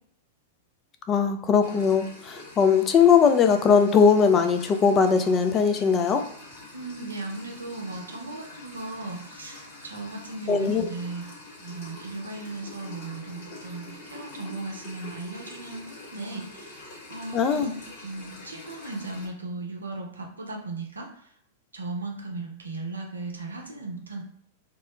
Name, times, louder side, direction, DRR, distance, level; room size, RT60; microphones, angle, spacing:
voice 1, 1.1-6.2 10.5-10.9 17.3-17.7, left 6 dB, 25° left, 6 dB, 0.3 m, -20 dB
sound 1, 1.6-19.3, left 2 dB, 55° left, 1.2 m, -45 dB
voice 2, 6.7-11.2 11.6-16.8 17.1-21.3 21.7-24.2, right 2 dB, 80° right, 0 dB, 0.6 m, -37 dB
2.3 x 2.0 x 2.9 m, 0.64 s
figure-of-eight pair, 100°, 0 cm